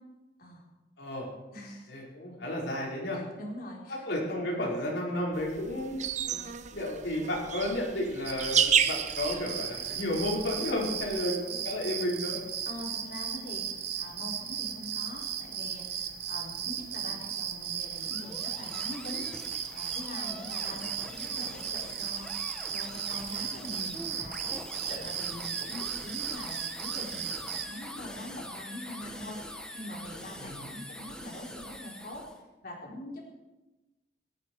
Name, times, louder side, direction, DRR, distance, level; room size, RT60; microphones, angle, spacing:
voice 1, 1.0-1.3 1.9-3.2 4.0-6.0 6.7-12.4 20.7-20.9 30.4-30.7, left 1 dB, 85° left, -3 dB, 5.0 m, -32 dB
voice 2, 1.5-1.9 3.1-4.0 12.6-13.7 13.9-19.3 19.7-32.2 32.6-33.3, left 1 dB, 55° left, -2 dB, 4.3 m, -43 dB
sound 1, 5.3-11.2, right 7 dB, 45° right, 0.7 m, -32 dB
sound 2, 8.2-27.6, right 8 dB, 65° right, 1.4 m, -36 dB
sound 3, 17.7-32.4, left 1 dB, 5° left, 1.3 m, -44 dB
18.0 x 14.0 x 4.8 m, 1.1 s
head